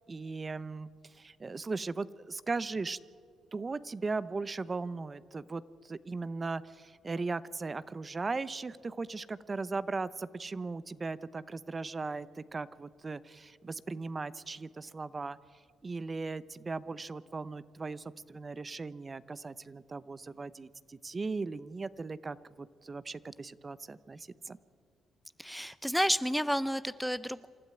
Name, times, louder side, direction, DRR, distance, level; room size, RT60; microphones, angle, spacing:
voice 1, 0.1-0.9 1.1-3.0 3.5-15.4 15.8-24.6, right 3 dB, 35° right, 16 dB, 0.8 m, -38 dB
voice 2, 25.4-27.5, equal, ahead, 16 dB, 0.6 m, -30 dB
27.5 x 12.5 x 9.4 m, 2.2 s
supercardioid pair, 60°, 0 cm